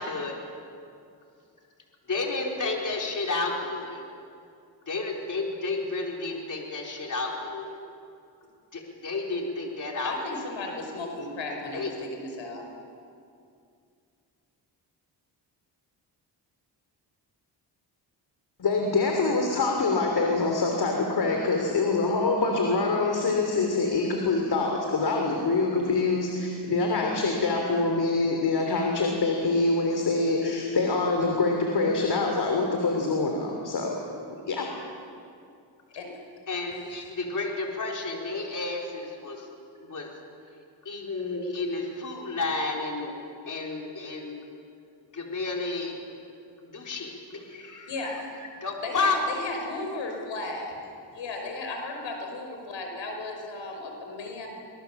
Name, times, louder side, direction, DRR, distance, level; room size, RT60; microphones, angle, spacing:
voice 1, 2.1-4.0 4.9-7.8 8.7-10.2 11.7-11.9 36.5-39.5 39.8-40.1 40.8-43.1 43.5-44.5 45.1-46.0 46.6-48.2 48.6-49.2, left 3 dB, 45° left, 0 dB, 4.3 m, -31 dB
voice 2, 10.0-12.6 36.0-36.1 47.9-48.1 48.8-50.7 51.1-54.5, left 2 dB, 80° left, 2 dB, 5.2 m, -35 dB
voice 3, 18.6-33.9 34.3-34.7, left 3 dB, 60° left, 2 dB, 3.3 m, -25 dB
25.0 x 21.5 x 7.2 m, 2.4 s
cardioid pair, 80°, 44 cm